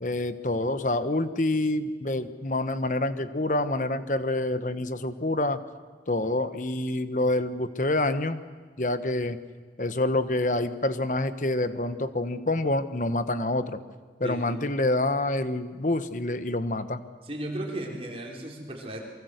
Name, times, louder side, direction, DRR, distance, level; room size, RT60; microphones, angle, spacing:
voice 1, 0.0-5.6 6.1-8.4 8.8-9.4 9.8-13.8 14.2-17.0, left 2 dB, 45° left, 11 dB, 1.2 m, -27 dB
voice 2, 17.2-19.0, right 1 dB, 35° right, -1 dB, 4.7 m, -35 dB
28.0 x 24.0 x 8.1 m, 1.5 s
head